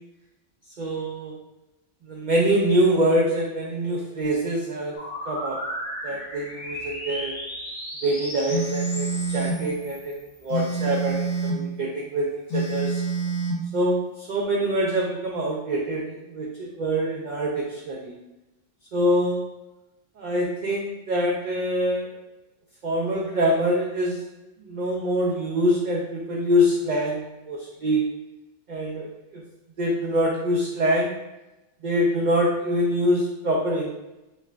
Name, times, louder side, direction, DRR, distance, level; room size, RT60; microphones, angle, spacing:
voice 1, 0.8-1.4 2.1-4.9 5.3-5.6 6.0-7.3 8.0-13.0 13.7-18.1 18.9-19.4 20.2-22.1 22.8-24.2 24.7-28.0 28.7-29.4 29.8-31.2 31.8-33.9, equal, 60° right, -2 dB, 0.5 m, -25 dB
sound 1, 5.0-10.5, equal, 35° left, 0.8 m, -35 dB
Telephone, 8.5-9.6 10.5-11.7 12.5-13.7, right 3 dB, 80° left, 1.0 m, -27 dB
5.3 x 2.1 x 2.3 m, 0.97 s
omnidirectional pair, 1.2 m